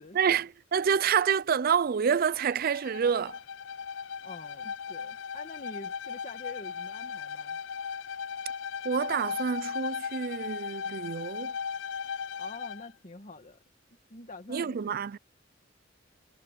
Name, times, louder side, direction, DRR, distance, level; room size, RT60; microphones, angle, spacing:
voice 1, 0.1-3.4 8.8-11.5 14.5-15.2, right 7 dB, 50° right, 0.4 m, -28 dB
Bowed string instrument, 2.4-12.9, left 6 dB, 80° left, 0.5 m, -37 dB
voice 2, 4.2-7.6 12.4-13.6 14.1-15.0, left 2 dB, 40° left, 1.8 m, -46 dB
head